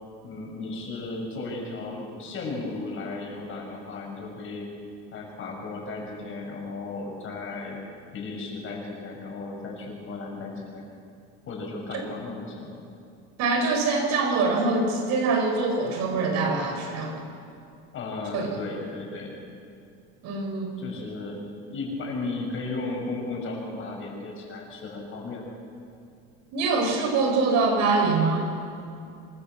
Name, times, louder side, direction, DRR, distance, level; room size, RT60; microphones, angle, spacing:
voice 1, 0.2-4.7 5.1-7.8 8.1-10.8 11.5-12.7 17.9-19.3 20.8-21.4 21.7-25.5, left 3 dB, 45° left, 0 dB, 6.5 m, -35 dB
voice 2, 13.4-17.2 18.3-18.5 20.2-20.7 26.5-28.4, right 3 dB, 65° right, 3 dB, 5.1 m, -24 dB
25.5 x 14.0 x 7.7 m, 2.5 s
supercardioid pair, 115°, 29 cm